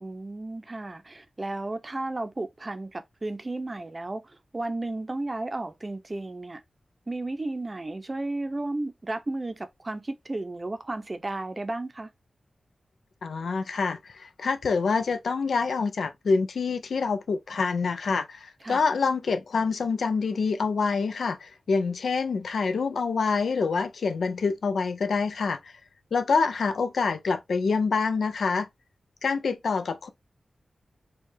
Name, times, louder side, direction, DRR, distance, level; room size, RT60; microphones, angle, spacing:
voice 1, 0.0-6.6 7.1-12.1 18.6-18.8, right 2 dB, 30° right, 0.6 m, -33 dB
voice 2, 13.2-25.7 26.1-28.7 29.2-30.1, left 4 dB, 85° left, 0.4 m, -26 dB
4.6 x 2.3 x 2.7 m
wide cardioid pair, 85°, 0 cm